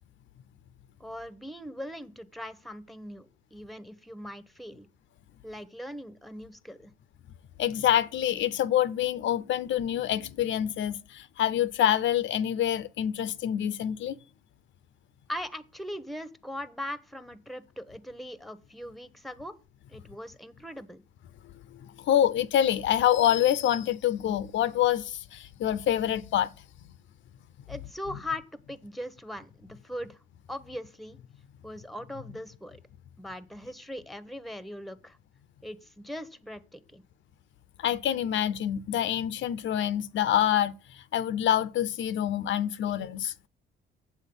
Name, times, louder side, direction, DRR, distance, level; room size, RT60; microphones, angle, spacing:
voice 1, 1.0-4.9 5.4-6.9 15.3-19.5 19.9-21.0 27.7-30.2 30.5-31.2 31.6-32.8 33.2-35.2 35.6-37.0, left 1 dB, ahead, 0.9 m, -40 dB
voice 2, 7.6-14.2 21.8-26.5 37.8-43.3, left 11 dB, 75° left, 0.7 m, -26 dB
8.4 x 7.4 x 5.3 m
cardioid pair, 90°, 20 cm